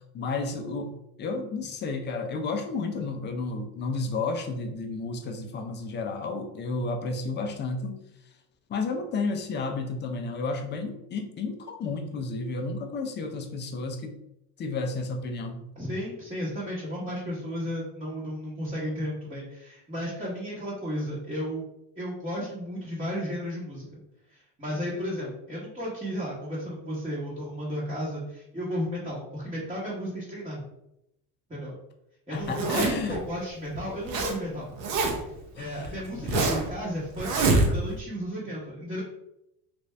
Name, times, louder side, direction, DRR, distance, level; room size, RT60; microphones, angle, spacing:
voice 1, 0.1-8.0 8.7-14.2 14.6-15.7 32.3-33.2 35.6-36.5, left 3 dB, 25° left, 5 dB, 0.5 m, -32 dB
voice 2, 15.8-21.6 22.0-23.9 24.3-30.6 31.5-31.7 32.3-34.7 35.6-39.0, equal, 15° right, -7 dB, 1.1 m, -33 dB
Zipper (clothing), 32.4-33.1 33.7-34.3 34.6-35.4 35.8-36.7 37.2-38.0, right 3 dB, 70° right, 1.0 m, -25 dB
3.4 x 2.6 x 3.2 m, 0.84 s
supercardioid pair, 110°, 43 cm